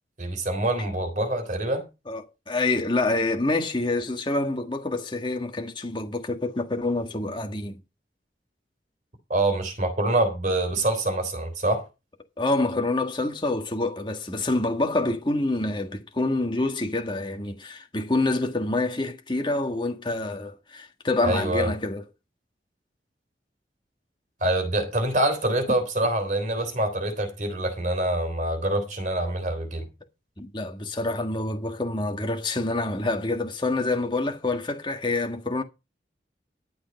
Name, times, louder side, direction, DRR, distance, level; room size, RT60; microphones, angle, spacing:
voice 1, 0.2-1.8 9.3-11.8 21.2-21.7 24.4-29.8, right 1 dB, 45° right, 3.4 m, -25 dB
voice 2, 2.1-7.8 12.4-22.0 30.4-35.6, left 2 dB, 25° left, 1.5 m, -27 dB
11.5 x 7.8 x 5.2 m
head